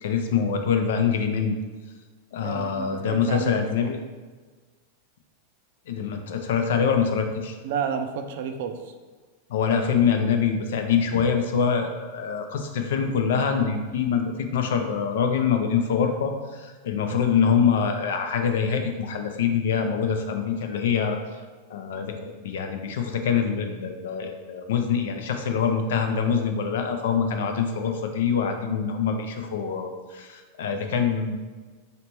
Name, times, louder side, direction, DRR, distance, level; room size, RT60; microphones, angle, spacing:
voice 1, 0.0-1.5 2.3-4.0 5.9-7.6 9.5-21.2 21.7-31.4, left 6 dB, 80° left, 5 dB, 0.6 m, -25 dB
voice 2, 2.4-3.9 7.6-8.8, right 7 dB, 65° right, 7 dB, 0.4 m, -31 dB
4.1 x 3.3 x 3.0 m, 1.4 s
supercardioid pair, 135°, 0 cm